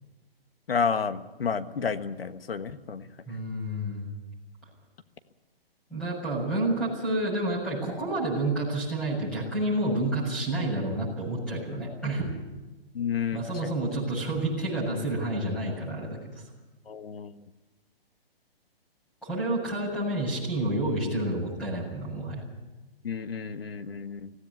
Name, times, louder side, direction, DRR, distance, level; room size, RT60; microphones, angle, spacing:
voice 1, 0.7-3.1 12.9-13.7 16.9-17.4 23.0-24.3, left 6 dB, 75° left, 10 dB, 1.4 m, -31 dB
voice 2, 3.3-4.1 5.9-12.3 13.3-16.4 19.2-22.4, right 1 dB, 5° left, -7 dB, 7.3 m, -29 dB
18.0 x 16.5 x 9.6 m, 1.1 s
hypercardioid pair, 150°, 30 cm